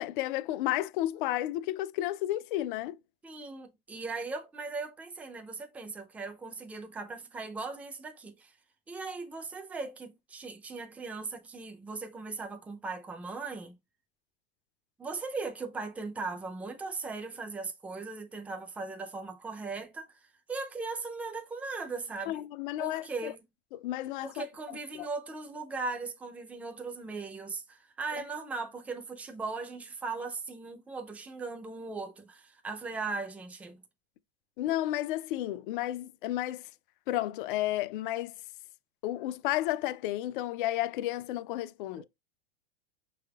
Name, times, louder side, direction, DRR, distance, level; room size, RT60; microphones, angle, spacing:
voice 1, 0.0-3.0 22.3-23.3 23.7-24.4 24.9-25.1 34.6-36.6 37.1-38.3 39.0-42.0, left 14 dB, 60° left, 0.5 m, -32 dB
voice 2, 3.2-8.5 8.9-13.7 15.0-20.1 20.5-22.4 22.8-23.4 24.2-33.8 42.0-42.1, right 3 dB, 5° right, 0.4 m, -38 dB
5.6 x 3.4 x 2.3 m
supercardioid pair, 150°, 30 cm